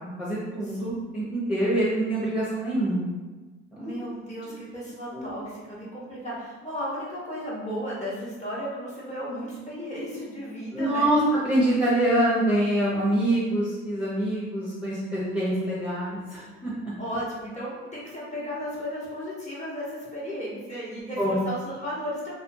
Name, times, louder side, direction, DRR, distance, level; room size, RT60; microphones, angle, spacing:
voice 1, 0.2-3.0 3.7-4.1 5.1-5.4 10.7-11.2 11.4-16.9 21.2-21.3, right 1 dB, 5° right, -9 dB, 0.7 m, -25 dB
voice 2, 3.8-11.1 17.0-22.3, equal, 25° left, -7 dB, 1.0 m, -34 dB
2.5 x 2.3 x 2.6 m, 1.3 s
cardioid pair, 90°, 30 cm